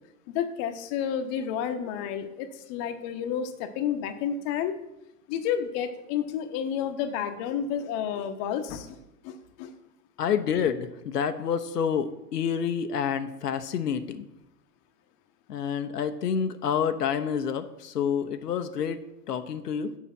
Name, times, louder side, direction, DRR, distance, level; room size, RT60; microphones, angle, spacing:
voice 1, 0.3-4.7 5.3-9.0 9.2-9.8, left 8 dB, 35° left, 8 dB, 0.9 m, -30 dB
voice 2, 10.2-14.3 15.5-19.0 19.3-20.0, left 7 dB, 75° left, 8 dB, 0.7 m, -28 dB
7.3 x 4.9 x 7.2 m, 0.91 s
figure-of-eight pair, 105°, 48 cm